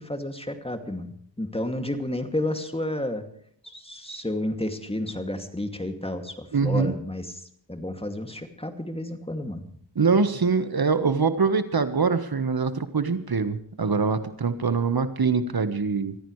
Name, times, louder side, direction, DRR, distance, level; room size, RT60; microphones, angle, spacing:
voice 1, 0.0-3.2 3.6-9.7, left 1 dB, 15° left, 6 dB, 2.5 m, -31 dB
voice 2, 6.5-6.9 9.9-16.2, right 5 dB, 55° right, 10 dB, 1.5 m, -24 dB
24.5 x 15.5 x 3.3 m, 0.65 s
wide cardioid pair, 65°, 43 cm